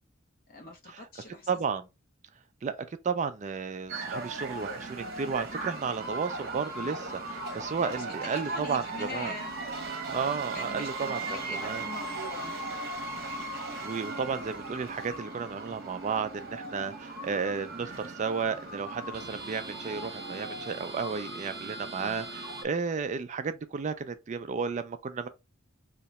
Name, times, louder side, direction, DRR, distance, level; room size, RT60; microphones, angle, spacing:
voice 1, 0.5-1.5 7.8-9.5 10.5-12.6 21.9-22.2, left 2 dB, 45° left, 1.0 m, -41 dB
voice 2, 1.5-1.9 2.6-2.8 3.0-9.3 10.1-11.8 13.4-25.3, right 5 dB, 35° right, 0.4 m, -33 dB
sound 1, 3.9-22.6, right 2 dB, 55° right, 1.0 m, -38 dB
2.8 x 2.2 x 4.0 m
head